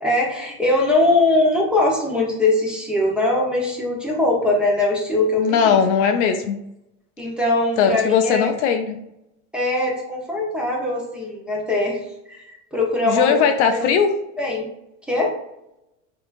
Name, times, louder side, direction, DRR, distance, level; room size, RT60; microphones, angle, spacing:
voice 1, 0.0-5.8 7.2-8.5 9.5-12.0 12.3-13.4 13.7-14.0 14.4-14.6 15.1-15.3, left 2 dB, ahead, -3 dB, 0.9 m, -21 dB
voice 2, 5.4-6.6 7.8-9.0 13.0-14.1, left 7 dB, 60° left, 7 dB, 0.5 m, -19 dB
5.2 x 2.8 x 2.6 m, 0.84 s
supercardioid pair, 125°, 41 cm